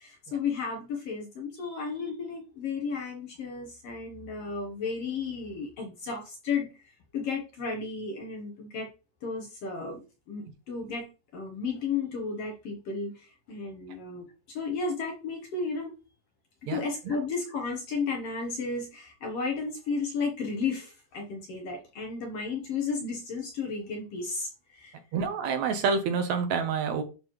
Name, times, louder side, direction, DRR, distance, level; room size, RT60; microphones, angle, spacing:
voice 1, 0.0-8.9 9.2-11.1 11.3-16.0 16.6-24.9, left 4 dB, 65° left, 2 dB, 1.7 m, -33 dB
voice 2, 25.1-27.0, right 5 dB, 70° right, 8 dB, 1.9 m, -28 dB
11.0 x 4.0 x 3.0 m, 0.32 s
omnidirectional pair, 3.6 m